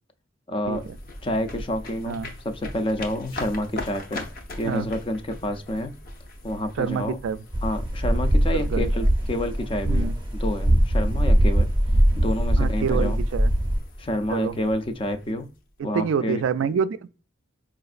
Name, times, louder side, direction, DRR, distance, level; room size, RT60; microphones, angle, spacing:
voice 1, 0.5-0.9 1.2-2.2 2.4-4.3 4.6-5.9 6.4-7.2 7.6-11.7 12.2-13.2 14.0-15.5 15.8-16.4, left 1 dB, 25° left, 0.4 m, -28 dB
sound 1, 0.6-15.8, left 1 dB, 50° left, 0.8 m, -41 dB
voice 2, 6.8-7.4 8.5-8.9 9.9-10.1 12.6-13.5 14.3-14.6 15.8-17.1, right 6 dB, 75° right, 0.3 m, -27 dB
sound 2, 7.5-13.8, right 1 dB, 25° right, 0.6 m, -21 dB
5.1 x 2.5 x 2.4 m
head